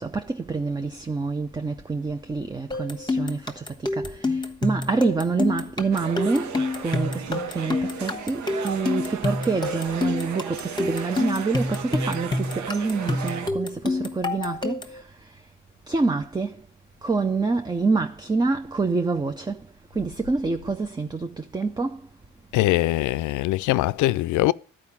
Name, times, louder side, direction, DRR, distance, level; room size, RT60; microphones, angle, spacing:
voice 1, 0.0-15.5 15.9-16.7 17.0-22.1, right 4 dB, 15° right, 0.5 m, -27 dB
sound 1, 2.7-15.0, left 2 dB, 15° left, 1.2 m, -28 dB
sound 2, 5.9-13.5, right 6 dB, 70° right, 1.0 m, -35 dB
voice 2, 22.5-24.5, left 17 dB, 80° left, 0.4 m, -22 dB
11.5 x 4.9 x 7.2 m
cardioid pair, 90°, 30 cm